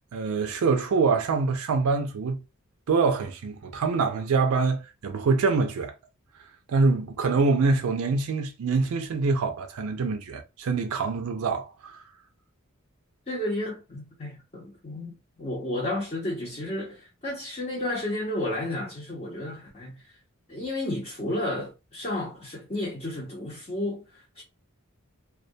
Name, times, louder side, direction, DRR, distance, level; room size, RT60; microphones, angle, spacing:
voice 1, 0.1-2.4 2.9-5.9 6.7-12.0, right 4 dB, 80° right, 0.4 m, -25 dB
voice 2, 13.3-20.1 20.5-24.4, left 1 dB, 30° left, 0.7 m, -32 dB
2.2 x 2.1 x 2.6 m
head